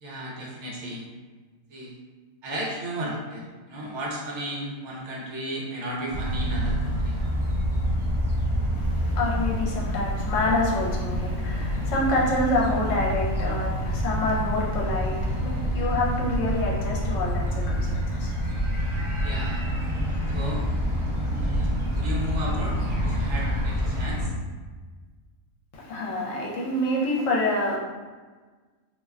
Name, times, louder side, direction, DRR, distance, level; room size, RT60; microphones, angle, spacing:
voice 1, 0.0-1.0 1.7-1.9 2.4-7.1 19.2-19.7 20.3-20.6 21.3-24.3, right 1 dB, 65° right, -3 dB, 0.9 m, -34 dB
sound 1, 6.1-24.3, equal, 40° right, 0.4 m, -27 dB
voice 2, 8.8-18.3 25.7-27.8, left 1 dB, 75° left, -3 dB, 0.9 m, -27 dB
2.5 x 2.2 x 3.5 m, 1.4 s
omnidirectional pair, 1.4 m